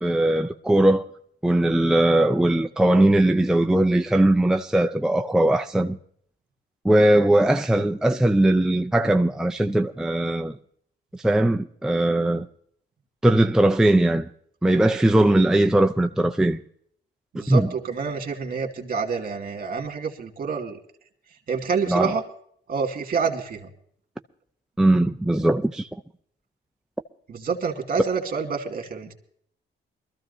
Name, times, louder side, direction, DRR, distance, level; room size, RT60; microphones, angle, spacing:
voice 1, 0.0-1.1 1.4-6.0 6.8-10.5 11.1-12.5 13.2-14.3 14.6-16.6 17.5-17.7 21.9-22.2 24.8-25.9, right 1 dB, 5° right, 0.5 m, -20 dB
voice 2, 17.3-20.8 21.5-22.2 22.7-23.7 27.3-29.1, right 5 dB, 45° right, 2.2 m, -27 dB
23.0 x 14.0 x 2.7 m
cardioid pair, 90°, 20 cm